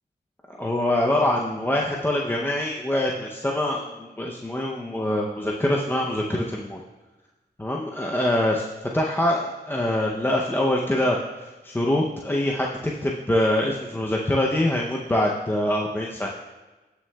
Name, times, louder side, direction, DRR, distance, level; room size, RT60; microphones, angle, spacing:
voice 1, 0.5-6.8 7.6-8.6 8.9-16.3, left 1 dB, 10° left, -2 dB, 0.6 m, -24 dB
17.5 x 6.1 x 2.2 m, 1.1 s
wide cardioid pair, 155°, 18 cm